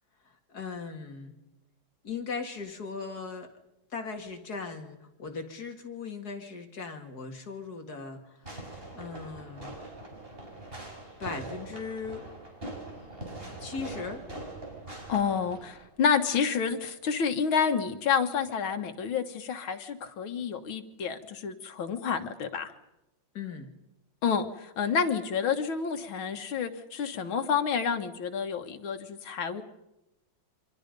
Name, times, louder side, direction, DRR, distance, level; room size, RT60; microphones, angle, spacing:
voice 1, 0.5-1.3 2.0-3.5 3.9-8.4 8.9-9.7 11.2-12.2 13.6-14.2 23.3-23.7, left 5 dB, 50° left, 4 dB, 2.7 m, -38 dB
Fireworks, 8.4-15.9, right 2 dB, 25° right, 5.2 m, -42 dB
voice 2, 15.1-22.7 24.2-29.6, left 6 dB, 85° left, 7 dB, 2.2 m, -29 dB
28.0 x 24.5 x 5.3 m, 0.93 s
omnidirectional pair, 2.2 m